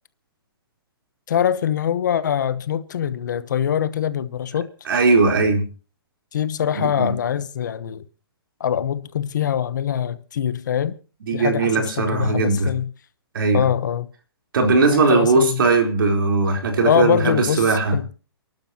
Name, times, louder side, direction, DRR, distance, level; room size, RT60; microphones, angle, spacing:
voice 1, 1.3-4.7 6.3-8.0 8.6-11.0 11.3-12.9 13.5-14.0 14.9-15.6 16.8-18.1, left 9 dB, 45° left, 1.0 m, -23 dB
voice 2, 4.9-5.6 6.7-7.1 11.3-12.7 13.3-13.6 14.5-18.0, right 3 dB, 55° right, 4.1 m, -19 dB
30.0 x 12.0 x 2.9 m
hypercardioid pair, 180°, 13 cm